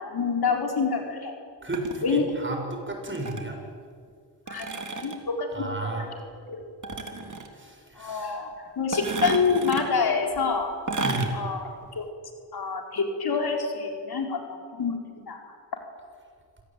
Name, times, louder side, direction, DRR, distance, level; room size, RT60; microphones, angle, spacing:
voice 1, 0.0-1.3 2.0-2.3 4.5-5.9 6.5-6.6 8.0-10.7 11.3-12.1 12.5-15.5, left 5 dB, 60° left, 2 dB, 4.6 m, -27 dB
voice 2, 1.6-3.6 5.5-6.1 7.3-8.4 11.0-11.4, right 2 dB, 25° right, 2 dB, 7.0 m, -33 dB
sound 1, 1.7-2.0 3.1-3.5 4.5-5.2 6.8-7.5 8.9-9.8 10.9-11.3 11.8-11.9, right 3 dB, 45° right, 3.4 m, -31 dB
26.0 x 18.5 x 9.2 m, 2.1 s
cardioid pair, 70°, 43 cm